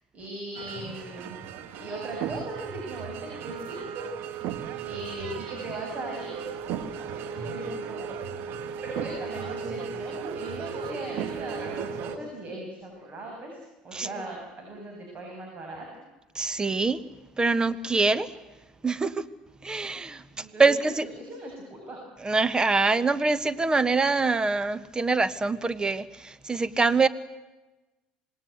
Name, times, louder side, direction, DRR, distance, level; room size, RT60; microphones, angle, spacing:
voice 1, 0.1-4.4 4.8-6.4 7.1-16.0 20.4-22.0, right 1 dB, 40° right, 1 dB, 7.2 m, -39 dB
sound 1, 0.6-12.2, right 7 dB, 60° right, 1.7 m, -36 dB
voice 2, 16.3-17.0 17.4-18.3 18.8-19.2 19.6-20.2 20.6-21.1 22.2-27.1, right 3 dB, 20° right, 14 dB, 1.4 m, -24 dB
26.0 x 19.5 x 8.1 m, 1.1 s
hypercardioid pair, 65°, 4 cm